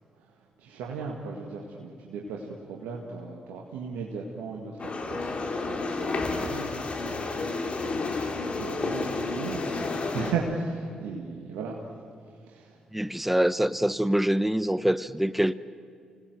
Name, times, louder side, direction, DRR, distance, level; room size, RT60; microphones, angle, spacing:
voice 1, 0.6-6.6 7.8-9.6 10.1-11.8 12.5-12.8, right 5 dB, 80° right, 2.0 m, -36 dB
sound 1, 4.8-10.3, left 3 dB, 45° left, 3.1 m, -31 dB
voice 2, 12.9-15.5, right 1 dB, 5° right, 0.9 m, -25 dB
25.5 x 18.5 x 8.0 m
hypercardioid pair, 45°, 3 cm